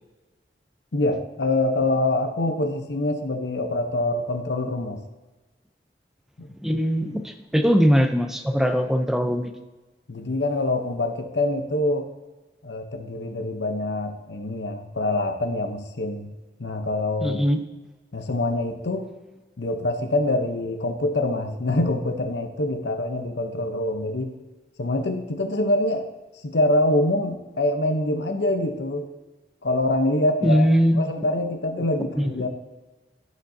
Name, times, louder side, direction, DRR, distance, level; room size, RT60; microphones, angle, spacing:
voice 1, 0.9-5.0 6.4-6.5 10.1-12.1 12.6-16.3 16.6-17.4 18.1-19.1 19.6-24.4 24.8-26.1 26.4-29.1 29.6-30.7 31.0-32.5, left 2 dB, 80° left, 6 dB, 0.8 m, -25 dB
voice 2, 6.6-9.5 17.2-17.6 30.4-31.1 32.2-32.3, equal, ahead, 6 dB, 0.5 m, -21 dB
14.5 x 5.1 x 2.7 m, 1.2 s
head